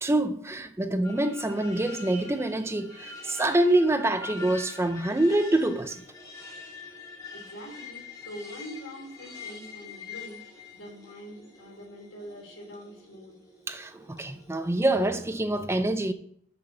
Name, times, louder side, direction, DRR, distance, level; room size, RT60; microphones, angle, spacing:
voice 1, 0.0-6.0 13.7-16.1, right 1 dB, 15° right, 0.5 m, -26 dB
sound 1, 1.0-15.4, left 4 dB, 15° left, 2.0 m, -45 dB
voice 2, 7.3-10.4 10.7-13.4, equal, 80° left, 3.3 m, -44 dB
7.4 x 6.8 x 7.7 m
head